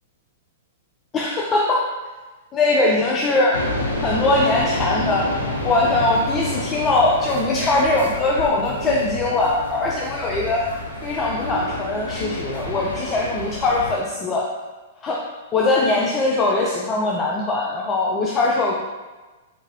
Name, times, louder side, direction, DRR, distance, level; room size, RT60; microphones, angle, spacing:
voice 1, 1.1-1.9 2.5-3.6 4.0-5.3 5.6-10.6 11.0-14.5 15.0-15.2 15.5-18.7, left 2 dB, 25° left, -3 dB, 0.4 m, -21 dB
sound 1, 3.5-13.9, left 1 dB, 85° left, 0.7 m, -29 dB
3.6 x 2.7 x 3.0 m, 1.2 s
figure-of-eight pair, 105°, 0 cm